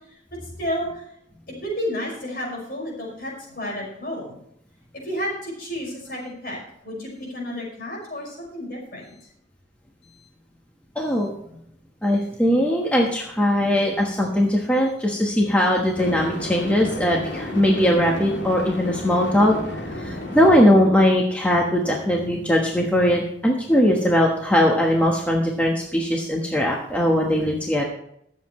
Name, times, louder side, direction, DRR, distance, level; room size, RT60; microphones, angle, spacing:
voice 1, 0.6-0.9 1.5-4.4 5.0-9.0, equal, 50° left, -2 dB, 5.6 m, -31 dB
voice 2, 10.9-11.3 12.0-19.6 20.0-27.8, equal, 10° left, -2 dB, 1.3 m, -20 dB
sound 1, 11.1-11.3 16.0-20.6, left 1 dB, 65° left, 2.6 m, -32 dB
22.5 x 7.5 x 3.2 m, 0.75 s
head